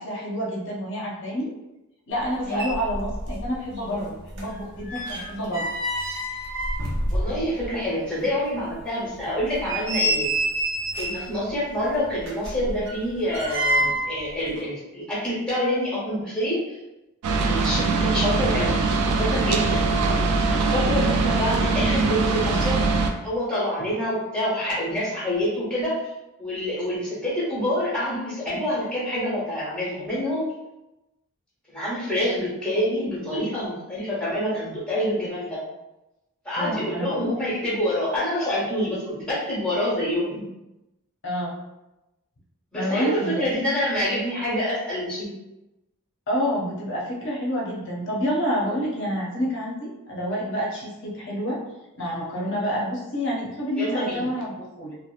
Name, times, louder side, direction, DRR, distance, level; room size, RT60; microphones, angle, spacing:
voice 1, 0.0-1.5 2.1-5.7 20.8-21.0 36.6-37.3 41.2-41.6 42.7-43.6 46.3-51.6 52.0-55.0, equal, 55° left, -3 dB, 0.6 m, -28 dB
sound 1, 2.2-2.3 2.5-3.5 3.8-7.7 8.1-8.2 8.7-8.8 9.4-11.3 12.2-14.2 14.5-14.6, right 1 dB, 55° right, 0.7 m, -27 dB
voice 2, 7.1-10.3 10.9-16.8 17.4-19.9 20.5-22.8 23.2-25.9 26.4-30.5 31.7-35.6 36.4-40.4 42.7-45.3 53.8-54.3, equal, 5° left, -8 dB, 0.9 m, -27 dB
sound 2, 17.2-23.1, right 3 dB, 90° right, 0.3 m, -22 dB
2.7 x 2.0 x 2.4 m, 0.96 s
head